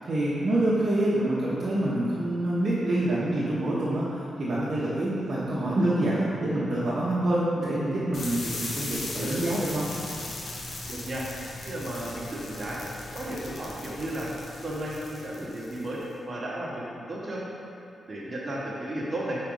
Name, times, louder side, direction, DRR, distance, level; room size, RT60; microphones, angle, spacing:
voice 1, 0.0-9.9, right 1 dB, 50° right, -9 dB, 1.1 m, -26 dB
sound 1, 8.1-16.0, left 2 dB, 60° left, 1.0 m, -38 dB
voice 2, 10.9-11.3 11.6-12.8 13.1-14.3 14.6-17.4 18.1-19.4, right 1 dB, 35° right, -6 dB, 1.4 m, -34 dB
5.0 x 4.4 x 5.5 m, 2.7 s
cardioid pair, 95°, 0 cm